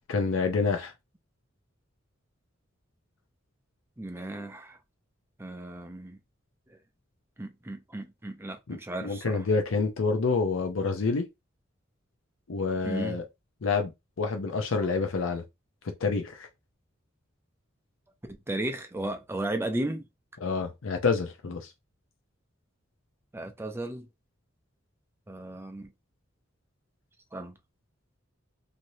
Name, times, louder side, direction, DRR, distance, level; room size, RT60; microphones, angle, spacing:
voice 1, 0.1-0.9 8.7-11.2 12.5-13.2 13.6-13.9 14.2-15.4 16.0-16.5 20.4-21.7, left 4 dB, 75° left, 0.6 m, -28 dB
voice 2, 4.0-4.8 5.4-6.2 7.4-9.4 12.8-13.2 18.3-20.0 23.3-24.1 25.3-25.9 27.3-27.5, right 1 dB, 10° right, 0.5 m, -35 dB
3.1 x 2.6 x 2.7 m
head